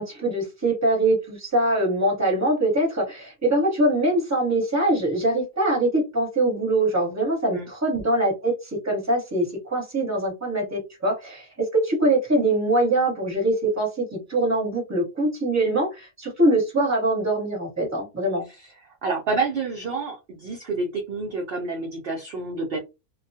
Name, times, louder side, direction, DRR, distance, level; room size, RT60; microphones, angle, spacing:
voice 1, 0.0-18.5, right 1 dB, 15° right, 1.0 m, -23 dB
voice 2, 18.6-22.8, right 3 dB, 60° right, 0.6 m, -29 dB
2.3 x 2.2 x 2.6 m
omnidirectional pair, 1.5 m